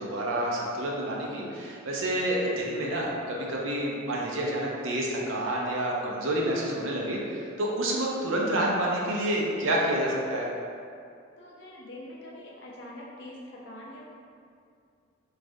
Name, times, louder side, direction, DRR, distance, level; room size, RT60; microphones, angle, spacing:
voice 1, 0.0-10.5, right 1 dB, 75° right, -2 dB, 0.5 m, -28 dB
voice 2, 11.4-14.1, left 1 dB, 55° left, -4 dB, 0.5 m, -44 dB
3.2 x 2.4 x 2.6 m, 2.4 s
head